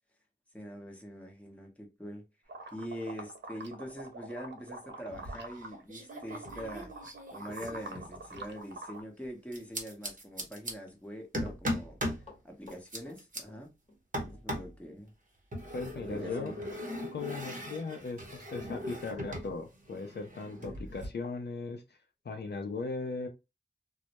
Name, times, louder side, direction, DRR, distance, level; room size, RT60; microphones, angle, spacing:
voice 1, 0.5-2.2 2.7-6.9 7.3-12.0 12.4-13.7 14.2-15.1 16.1-16.6 20.5-20.9, equal, 5° left, 0.8 m, -44 dB
sound 1, 2.5-5.8 6.1-9.0, right 2 dB, 65° right, 0.5 m, -45 dB
sound 2, 5.1-5.6 5.9-8.5 9.5-10.7 11.3-12.2 12.7-13.4 14.1-14.8 15.5-19.5 19.8-21.1, equal, 45° right, 0.9 m, -39 dB
Run, 11.4-14.0 14.3-14.5 15.7-15.9 16.3-16.4 16.9-17.0 17.3-17.5 18.0-18.1, left 3 dB, 30° left, 0.9 m, -54 dB
voice 2, 15.7-16.5 17.1-21.8 22.2-23.3, left 4 dB, 60° left, 0.5 m, -38 dB
2.2 x 2.0 x 2.8 m
wide cardioid pair, 65°, 20 cm